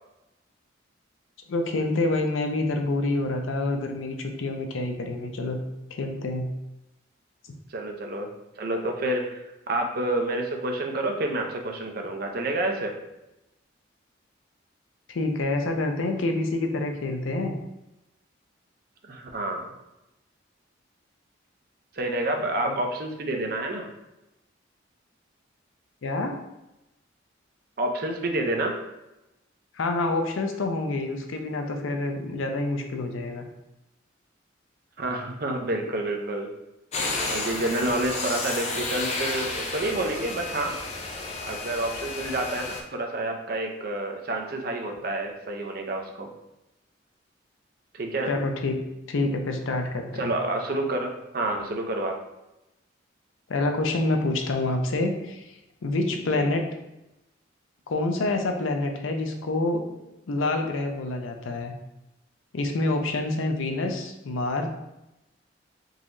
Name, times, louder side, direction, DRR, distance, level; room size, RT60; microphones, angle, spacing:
voice 1, 1.5-5.6 5.9-6.5 15.1-17.5 22.6-22.8 26.0-26.4 29.7-33.5 48.2-48.7 49.1-50.3 53.5-56.7 57.9-59.8 60.3-61.7 62.5-64.7, left 2 dB, 85° left, 4 dB, 0.5 m, -27 dB
voice 2, 7.7-8.3 8.6-12.9 19.0-19.7 21.9-23.9 27.8-28.8 35.0-36.5 37.3-40.8 41.5-46.3 47.9-48.3 50.2-52.2 56.3-56.5, right 2 dB, 50° right, 3 dB, 0.5 m, -29 dB
sound 1, 36.9-42.8, left 3 dB, 35° left, 0.4 m, -32 dB
3.9 x 2.9 x 2.5 m, 0.93 s
head